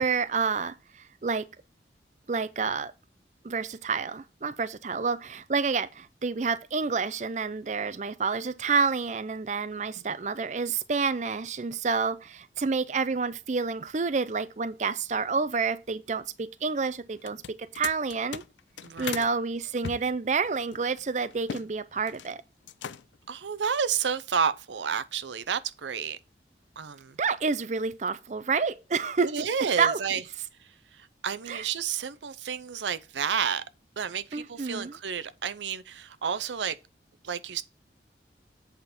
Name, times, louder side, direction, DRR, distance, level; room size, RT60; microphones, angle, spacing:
voice 1, 0.0-1.5 2.3-2.9 3.4-18.4 19.0-22.4 27.2-29.5 29.8-30.2 31.5-31.6 34.3-35.0, right 5 dB, 40° right, 0.5 m, -29 dB
sound 1, 17.2-19.3 19.8-21.7 22.0-22.3 22.6-23.3, left 7 dB, 90° left, 0.5 m, -39 dB
voice 2, 18.8-19.3 23.3-26.2 26.8-27.2 29.2-30.2 31.0-33.6 34.0-36.8 37.2-37.6, right 7 dB, 90° right, 0.6 m, -30 dB
8.1 x 5.1 x 4.2 m
head